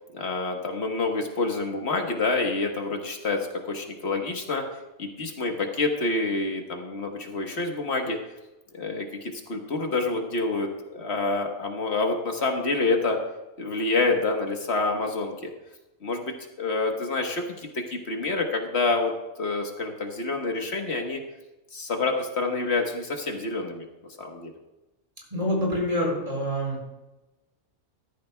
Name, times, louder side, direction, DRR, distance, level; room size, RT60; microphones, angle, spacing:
voice 1, 0.1-4.6 5.0-8.2 8.7-13.2 13.6-15.3 16.0-17.4 17.7-19.1 19.4-21.2 21.7-23.8 24.2-24.5, left 3 dB, 70° left, 2 dB, 1.6 m, -27 dB
voice 2, 25.3-26.8, equal, 30° right, -3 dB, 5.0 m, -26 dB
15.0 x 13.0 x 2.3 m, 1.0 s
omnidirectional pair, 1.2 m